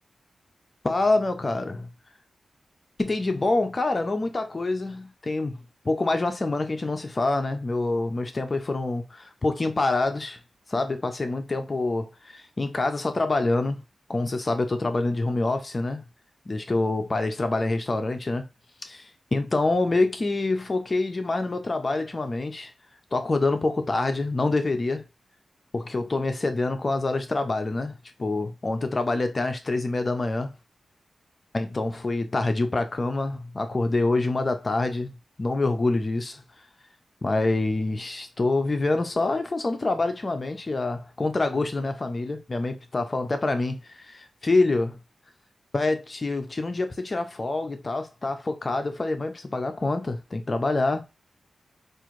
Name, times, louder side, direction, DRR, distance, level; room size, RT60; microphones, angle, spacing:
voice 1, 0.8-1.8 3.0-10.4 10.7-13.8 14.1-16.0 16.5-18.4 18.8-22.7 23.1-25.0 25.7-30.5 31.5-36.4 37.2-45.0 45.7-51.0, left 2 dB, 35° left, 0.5 m, -26 dB
4.7 x 2.5 x 3.1 m
wide cardioid pair, 95°, 0 cm